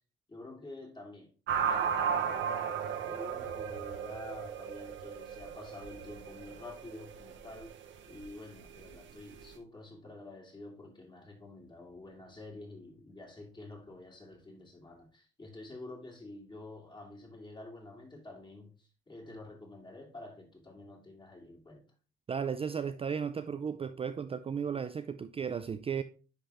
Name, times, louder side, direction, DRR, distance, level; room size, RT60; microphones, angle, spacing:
voice 1, 0.3-2.7 3.0-7.7 8.1-21.8, left 2 dB, 20° left, 2.6 m, -49 dB
sound 1, 1.5-9.5, right 7 dB, 75° right, 1.0 m, -35 dB
voice 2, 22.3-26.0, right 7 dB, 30° right, 0.4 m, -35 dB
10.0 x 3.5 x 3.4 m
cardioid pair, 90°, 20 cm